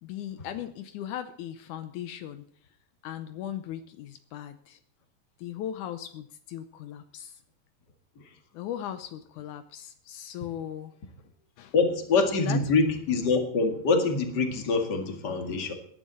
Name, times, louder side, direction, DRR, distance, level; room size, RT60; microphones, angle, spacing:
voice 1, 0.0-2.4 3.0-4.8 5.4-7.4 8.5-10.9 11.6-11.7 12.4-12.6, left 10 dB, 90° left, 10 dB, 1.7 m, -38 dB
voice 2, 11.7-15.7, left 4 dB, 35° left, 5 dB, 1.9 m, -25 dB
18.5 x 11.0 x 4.1 m, 0.66 s
omnidirectional pair, 4.5 m